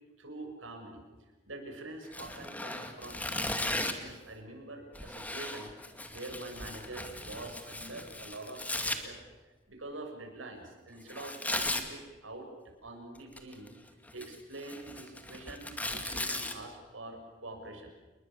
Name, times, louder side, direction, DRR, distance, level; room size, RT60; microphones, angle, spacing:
voice 1, 0.2-1.0 1.5-5.7 6.1-9.2 9.7-12.5 12.8-13.7 14.1-17.9, right 2 dB, 90° right, 3 dB, 7.4 m, -45 dB
Tearing, 2.1-4.1 4.9-9.0 11.1-11.9 13.1-13.7 14.1-16.5, left 2 dB, 10° left, 2.2 m, -37 dB
29.0 x 21.5 x 7.3 m, 1.3 s
head